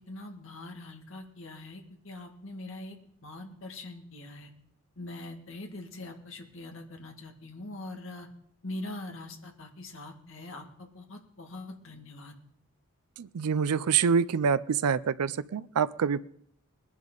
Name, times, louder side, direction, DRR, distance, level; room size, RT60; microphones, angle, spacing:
voice 1, 0.1-4.5 5.0-8.3 8.6-12.3, left 2 dB, 60° left, 2 dB, 1.9 m, -43 dB
voice 2, 13.2-16.2, right 6 dB, 90° right, 15 dB, 0.4 m, -26 dB
21.0 x 11.0 x 3.9 m, 0.71 s
head